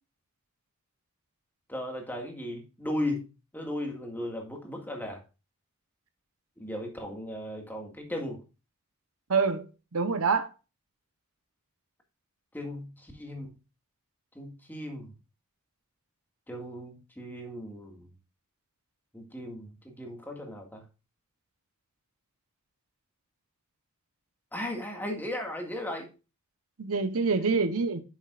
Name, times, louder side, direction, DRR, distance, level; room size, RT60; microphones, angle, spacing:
voice 1, 1.7-3.2 3.5-5.2 6.6-8.4 12.5-13.5 14.4-15.1 16.5-18.1 19.1-20.8 24.5-26.1, left 1 dB, 10° left, 1.9 m, -36 dB
voice 2, 9.3-9.7 9.9-10.5 26.8-28.0, right 4 dB, 75° right, 0.9 m, -26 dB
10.0 x 7.2 x 2.4 m
head